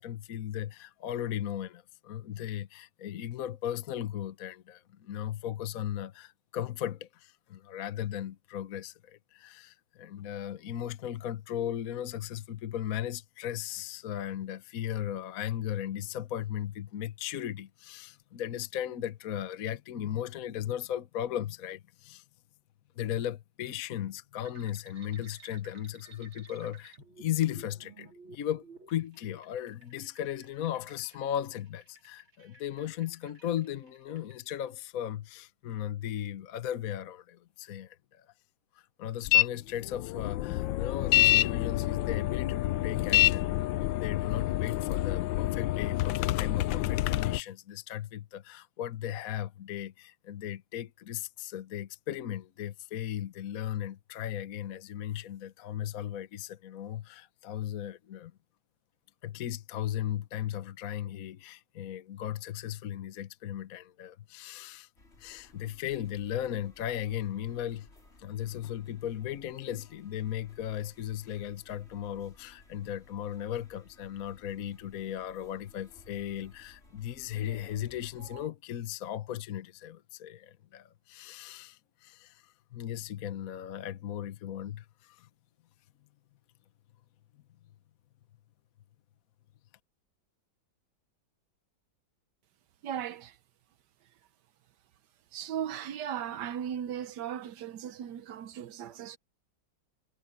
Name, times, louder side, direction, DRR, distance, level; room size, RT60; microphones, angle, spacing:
voice 1, 0.0-22.2 23.0-38.3 38.7-43.5 43.7-58.3 59.2-64.9 65.2-67.9 68.2-85.3, left 11 dB, 55° left, 1.2 m, -36 dB
sound 1, 24.4-34.6, right 4 dB, 80° right, 5.4 m, -56 dB
sound 2, 39.3-39.5 39.8-47.4, left 16 dB, 75° left, 1.2 m, -27 dB
sound 3, 65.0-78.5, left 1 dB, 30° left, 4.7 m, -57 dB
voice 2, 92.8-93.4 94.0-94.1 95.3-99.2, right 9 dB, 65° right, 1.3 m, -37 dB
omnidirectional pair, 2.2 m